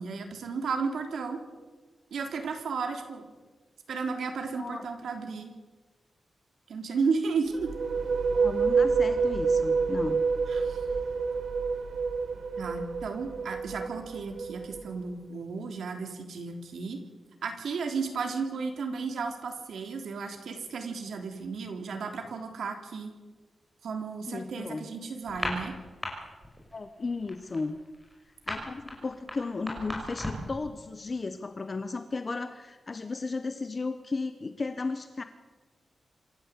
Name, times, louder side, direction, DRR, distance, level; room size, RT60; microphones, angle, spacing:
voice 1, 0.0-1.4 2.1-3.3 3.9-5.5 6.7-7.7 10.5-10.8 12.6-17.0 17.4-23.1 23.8-25.7, right 5 dB, 85° right, 4 dB, 3.4 m, -33 dB
voice 2, 4.5-4.8 8.3-10.2 24.3-24.8 26.7-27.8 28.5-35.2, left 3 dB, 30° left, 9 dB, 1.0 m, -34 dB
sound 1, 7.5-15.1, right 5 dB, 65° right, 1.9 m, -28 dB
sound 2, 25.2-26.1 26.4-26.7 27.0-30.6, left 1 dB, 5° left, 5.8 m, -35 dB
26.5 x 13.0 x 8.3 m, 1.3 s
wide cardioid pair, 160°, 0 cm